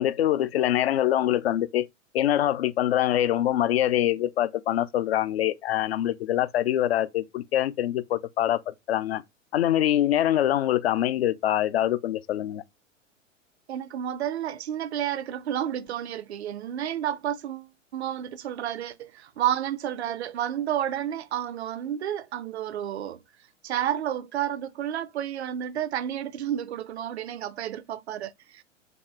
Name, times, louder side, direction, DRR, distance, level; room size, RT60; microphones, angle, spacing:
voice 1, 0.0-1.9 2.1-9.2 9.5-12.6, left 12 dB, 50° left, 0.5 m, -24 dB
voice 2, 13.7-23.2 23.6-28.6, right 10 dB, 55° right, 0.5 m, -31 dB
4.2 x 2.8 x 3.1 m
figure-of-eight pair, 105°, 39 cm